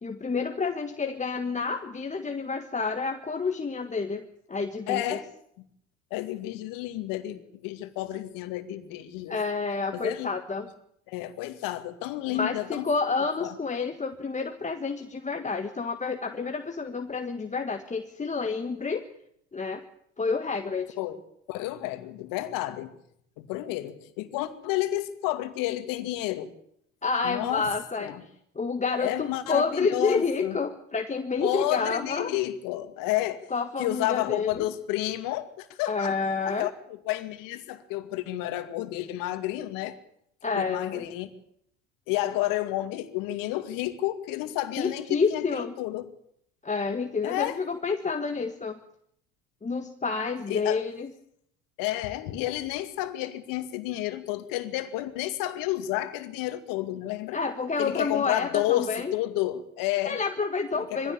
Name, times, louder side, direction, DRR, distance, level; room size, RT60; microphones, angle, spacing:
voice 1, 0.0-5.2 9.3-10.7 12.3-19.0 19.5-19.8 20.2-21.0 27.0-28.1 28.5-32.3 33.5-34.7 35.9-36.7 40.4-41.0 44.8-45.7 46.6-48.8 49.6-51.1 57.3-59.1 60.0-61.1, left 4 dB, 20° left, 5 dB, 1.6 m, -29 dB
voice 2, 4.9-5.3 6.1-9.4 9.9-10.3 11.1-12.9 13.4-13.5 21.0-21.2 21.5-22.9 23.4-26.5 27.2-27.7 28.0-28.2 29.0-30.6 31.4-33.4 33.8-36.2 36.5-36.7 37.1-40.0 40.5-41.3 42.1-46.1 47.2-47.6 50.5-50.8 51.8-57.4 57.8-60.2 60.9-61.1, left 15 dB, 65° left, 9 dB, 2.3 m, -31 dB
22.5 x 16.0 x 8.7 m, 0.70 s
hypercardioid pair, 75°, 36 cm